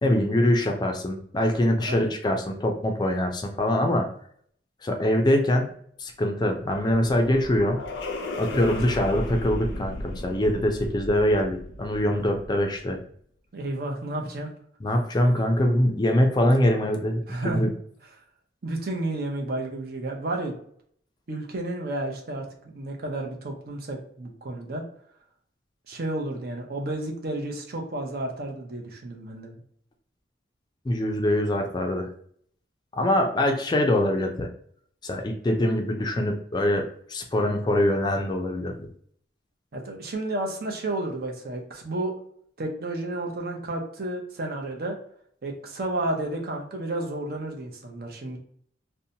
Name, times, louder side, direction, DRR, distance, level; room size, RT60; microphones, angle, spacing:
voice 1, 0.0-4.1 4.8-5.7 6.0-7.8 8.4-13.0 14.8-17.7 30.9-32.1 32.9-34.5 35.0-36.8 37.1-38.9, left 1 dB, 25° left, 3 dB, 0.4 m, -23 dB
sound 1, 6.5-12.8, left 1 dB, 85° left, 0.5 m, -36 dB
voice 2, 13.5-14.5 17.3-17.6 18.6-20.5 21.3-22.5 22.7-24.8 25.9-29.6 39.7-42.1 42.6-45.0 45.4-48.4, right 2 dB, 55° right, 1 dB, 0.6 m, -31 dB
2.7 x 2.1 x 2.7 m, 0.62 s
head